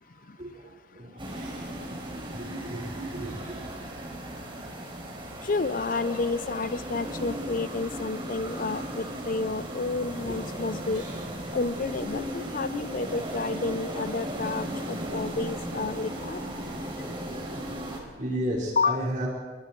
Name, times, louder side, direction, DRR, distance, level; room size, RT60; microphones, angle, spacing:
voice 1, 0.0-4.6 5.9-6.0 9.9-10.1 10.4-10.5 10.9-11.5 16.5-19.3, right 1 dB, 45° right, -3 dB, 5.0 m, -37 dB
sound 1, 1.2-18.0, right 1 dB, 30° right, 4.2 m, -36 dB
voice 2, 5.4-11.0 11.5-16.4 18.8-19.0, left 3 dB, 50° left, 15 dB, 0.5 m, -30 dB
29.0 x 21.5 x 4.6 m, 1.3 s
head